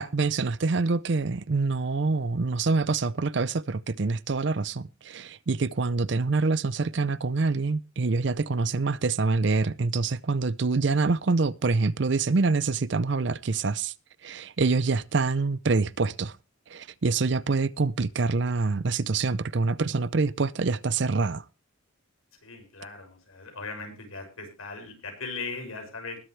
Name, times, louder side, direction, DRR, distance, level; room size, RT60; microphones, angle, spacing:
voice 1, 0.0-13.9 14.2-16.4 16.7-21.4, right 4 dB, 55° right, 0.5 m, -26 dB
voice 2, 22.4-26.2, left 4 dB, 90° left, 6.4 m, -38 dB
20.5 x 8.0 x 3.2 m
head